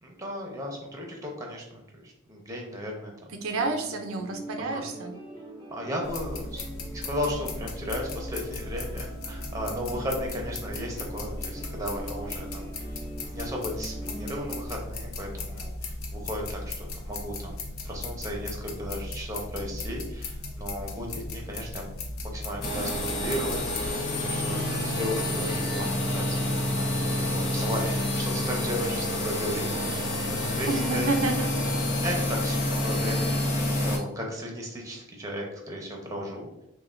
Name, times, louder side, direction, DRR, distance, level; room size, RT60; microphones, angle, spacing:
voice 1, 0.0-3.4 4.6-4.8 5.7-12.7 13.3-16.7 17.0-17.6 17.8-21.8 22.2-26.9 27.1-30.1 30.6-31.1 32.0-33.5 33.8-36.5, equal, 15° right, 0 dB, 0.8 m, -35 dB
voice 2, 3.4-5.1 14.1-14.3 30.7-31.5 32.2-32.3, right 3 dB, 70° right, 4 dB, 0.5 m, -29 dB
sound 1, 3.5-14.6, right 2 dB, 15° left, 1.4 m, -43 dB
sound 2, 6.0-23.9, left 2 dB, 70° left, 0.7 m, -37 dB
sound 3, 22.6-34.0, left 1 dB, 50° left, 1.0 m, -28 dB
5.6 x 2.3 x 2.5 m, 0.88 s
head